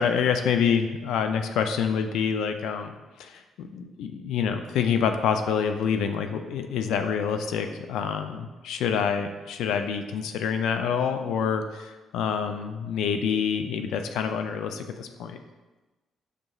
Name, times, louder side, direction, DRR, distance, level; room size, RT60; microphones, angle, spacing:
voice 1, 0.0-2.9 3.2-15.4, left 7 dB, 90° left, 7 dB, 0.3 m, -27 dB
6.4 x 2.9 x 2.3 m, 1.2 s
cardioid pair, 145°, 0 cm